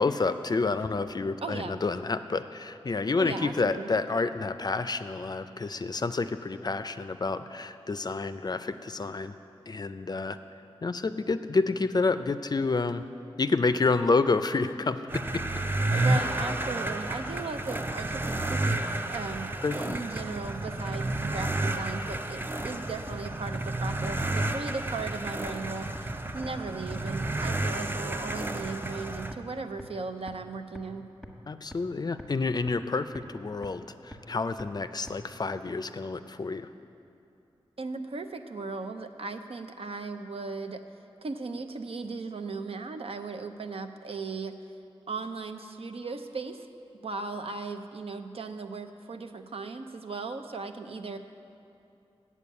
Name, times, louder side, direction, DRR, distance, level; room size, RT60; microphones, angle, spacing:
voice 1, 0.0-9.4 9.7-10.4 10.8-13.1 13.4-15.2 15.9-16.1 19.6-20.0 31.5-36.7, left 3 dB, 40° left, 11 dB, 0.4 m, -29 dB
voice 2, 1.4-1.8 3.2-3.9 15.9-31.1 37.8-40.8 41.2-44.6 45.1-46.7 47.0-51.2, right 4 dB, 70° right, 7 dB, 0.6 m, -37 dB
sound 1, 15.1-29.3, right 2 dB, 20° right, 0.5 m, -31 dB
sound 2, 20.2-20.3 20.7-20.8 21.2-21.3 21.6-21.7 22.1-22.2 22.6-22.7 23.1-23.2 23.6-23.7 24.0-24.1 24.5-24.6 25.0-25.1 25.5-25.6 26.0-26.1 26.4-26.5 26.9-27.0 27.4-27.5 27.9-28.0 28.4-28.5 28.8-28.9 29.3-29.4 29.8-29.9 30.3-30.4 30.8-30.9 31.2-31.3 31.7-31.8 32.2-32.3 32.7-32.8 33.2-33.3 33.6-33.7 34.1-34.2 34.6-34.7 35.1-35.2, equal, 5° right, 1.2 m, -43 dB
8.3 x 7.0 x 8.3 m, 2.8 s
wide cardioid pair, 75°, 10 cm